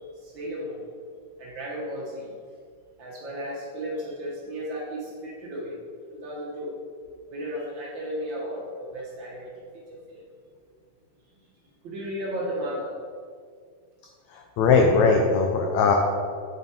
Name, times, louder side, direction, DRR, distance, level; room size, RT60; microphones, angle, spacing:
voice 1, 0.2-0.8 1.4-2.3 3.0-5.8 6.1-6.8 7.3-9.6 9.9-10.2 11.8-12.9, equal, 80° right, -5 dB, 1.0 m, -34 dB
voice 2, 14.3-15.9, left 4 dB, 90° left, 2 dB, 1.6 m, -20 dB
7.0 x 6.6 x 4.3 m, 2.1 s
omnidirectional pair, 4.0 m